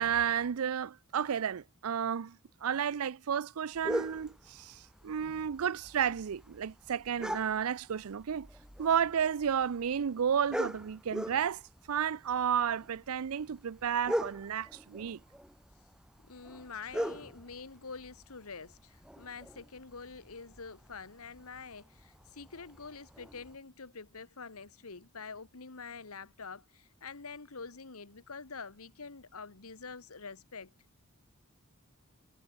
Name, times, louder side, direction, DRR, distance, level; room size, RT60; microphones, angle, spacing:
voice 1, 0.0-2.4 2.6-8.5 8.8-11.6 11.9-15.2, right 8 dB, 85° right, 0.5 m, -32 dB
sound 1, 3.7-23.6, equal, 5° right, 1.5 m, -42 dB
voice 2, 16.3-30.7, left 5 dB, 90° left, 1.5 m, -46 dB
head